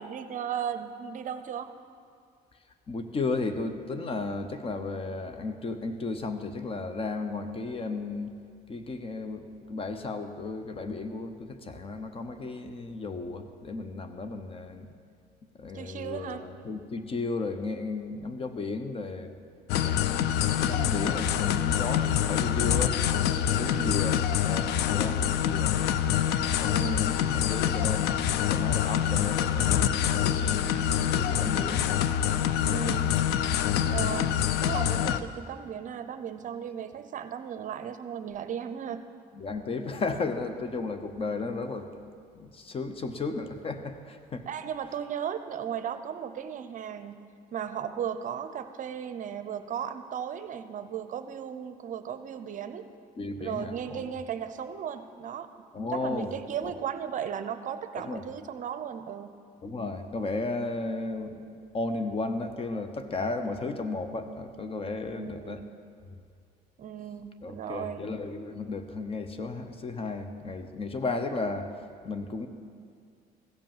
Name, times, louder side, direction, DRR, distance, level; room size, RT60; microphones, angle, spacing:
voice 1, 0.0-1.7 15.7-16.4 23.5-23.9 26.6-27.1 32.7-33.3 33.8-39.0 44.5-47.2 47.5-52.9 53.4-55.5 55.9-59.3 65.1-65.6 66.8-68.0, right 8 dB, 50° right, 10 dB, 0.6 m, -36 dB
voice 2, 2.9-8.3 8.7-14.9 15.5-19.3 19.8-25.8 26.4-30.7 31.0-31.9 33.0-33.2 39.3-41.9 42.3-44.5 53.2-54.2 55.7-56.3 56.6-56.7 58.0-58.2 59.6-65.6 66.1-66.2 67.4-72.5, left 3 dB, 35° left, 8 dB, 0.8 m, -34 dB
best night club loop ever made by kris klavenes, 19.7-35.2, left 10 dB, 80° left, 0.5 m, -26 dB
15.5 x 5.3 x 7.3 m, 2.2 s
cardioid pair, 110°, 17 cm